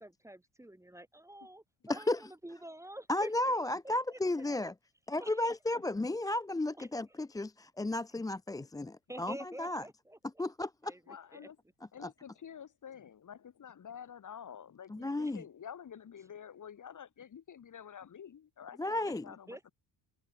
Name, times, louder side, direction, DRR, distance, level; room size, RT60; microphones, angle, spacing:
voice 1, 0.0-3.3 4.1-4.2 4.6-4.7 5.2-5.6 6.8-7.2 9.1-10.4 10.8-11.5 15.2-15.3 19.3-19.7, right 1 dB, 5° right, 2.0 m, -48 dB
voice 2, 3.1-4.7 5.1-9.8 10.4-10.9 14.9-15.4 18.8-19.2, left 2 dB, 10° left, 0.5 m, -33 dB
voice 3, 11.1-11.6 11.9-19.7, left 8 dB, 45° left, 3.0 m, -49 dB
cardioid pair, 115°, 42 cm